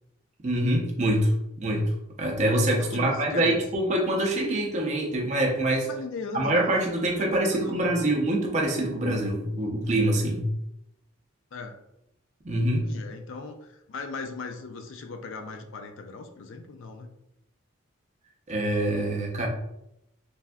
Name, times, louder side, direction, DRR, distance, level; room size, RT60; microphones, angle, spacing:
voice 1, 0.4-1.3 1.6-5.9 6.3-10.5 12.4-12.9 18.5-19.5, right 1 dB, 30° right, 0 dB, 0.5 m, -25 dB
voice 2, 2.9-3.6 5.9-8.2 11.5-11.8 12.8-17.1, left 3 dB, 60° left, 5 dB, 0.3 m, -38 dB
3.3 x 2.6 x 2.2 m, 0.84 s
head